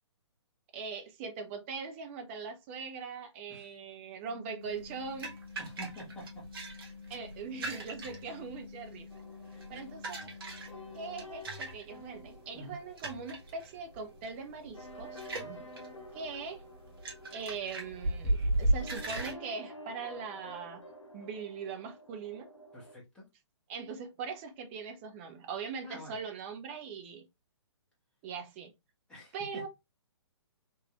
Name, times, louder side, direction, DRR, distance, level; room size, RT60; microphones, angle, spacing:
voice 1, 0.7-5.3 7.1-9.1 9.7-10.3 10.9-15.2 16.1-16.6 17.3-20.9 21.1-22.5 23.7-27.2 28.2-28.7 29.3-29.7, right 5 dB, 25° right, 0.6 m, -41 dB
sound 1, 4.3-11.3, left 5 dB, 30° left, 0.4 m, -50 dB
sound 2, 4.6-19.3, right 1 dB, 50° right, 1.0 m, -37 dB
voice 2, 5.6-6.5 9.5-9.7 12.5-12.8 15.3-15.7 22.7-23.3 25.8-26.2 29.1-29.6, right 1 dB, 5° left, 1.2 m, -47 dB
sound 3, 9.1-22.9, equal, 80° left, 0.7 m, -51 dB
3.3 x 3.1 x 2.3 m
figure-of-eight pair, 130°, 15 cm